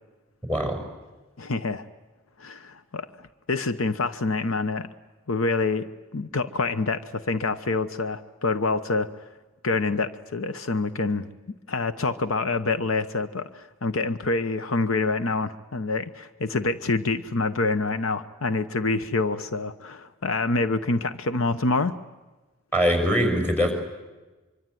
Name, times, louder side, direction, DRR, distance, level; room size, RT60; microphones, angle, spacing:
voice 1, 0.5-0.8 22.7-23.7, equal, 10° left, 4 dB, 5.7 m, -22 dB
voice 2, 1.4-1.8 2.4-4.9 5.3-9.1 9.6-11.3 11.7-21.9, left 3 dB, 75° left, 11 dB, 0.9 m, -26 dB
24.5 x 24.0 x 9.2 m, 1.2 s
head